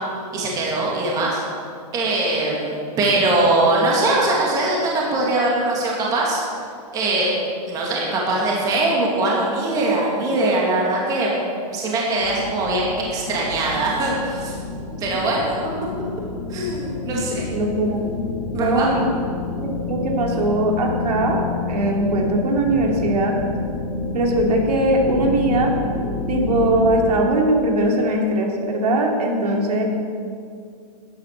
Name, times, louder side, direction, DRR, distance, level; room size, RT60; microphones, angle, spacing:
voice 1, 0.3-1.4 1.9-6.4 6.9-7.3 7.7-11.3 11.7-14.5 15.0-15.7 16.5-17.4 18.5-18.9, right 2 dB, 15° right, -3 dB, 2.3 m, -21 dB
sound 1, 12.2-27.1, left 4 dB, 25° left, 1.6 m, -29 dB
voice 2, 17.5-18.1 18.5-19.1 19.6-21.4 21.7-23.3 24.1-25.7 26.3-29.8, right 1 dB, 70° right, 0 dB, 3.1 m, -20 dB
13.5 x 10.5 x 6.7 m, 2.3 s
hypercardioid pair, 170°, 21 cm